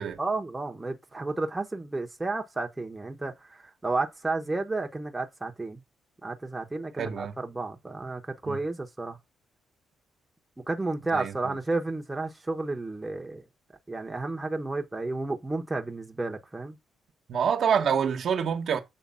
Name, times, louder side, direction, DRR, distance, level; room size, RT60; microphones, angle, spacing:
voice 1, 0.2-5.8 6.2-9.2 10.7-13.4 13.9-16.8, right 3 dB, 15° right, 1.1 m, -32 dB
voice 2, 7.0-7.3 8.5-8.6 11.1-11.6 17.3-18.8, right 7 dB, 60° right, 1.2 m, -27 dB
7.4 x 3.3 x 5.5 m
cardioid pair, 90°, 0 cm